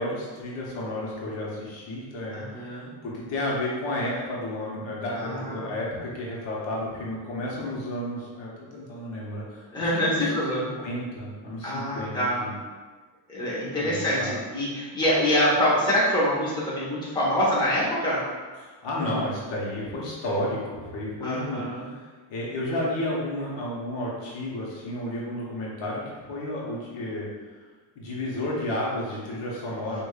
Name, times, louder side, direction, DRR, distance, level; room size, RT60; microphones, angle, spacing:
voice 1, 0.0-12.6 13.8-14.3 18.6-27.3 28.0-30.0, left 1 dB, 65° left, -4 dB, 1.0 m, -32 dB
voice 2, 2.3-2.9 5.2-5.5 9.7-10.7 11.6-12.4 13.3-18.2 21.2-21.9, equal, 10° left, -8 dB, 0.9 m, -25 dB
4.8 x 2.5 x 2.3 m, 1.3 s
cardioid pair, 150°, 47 cm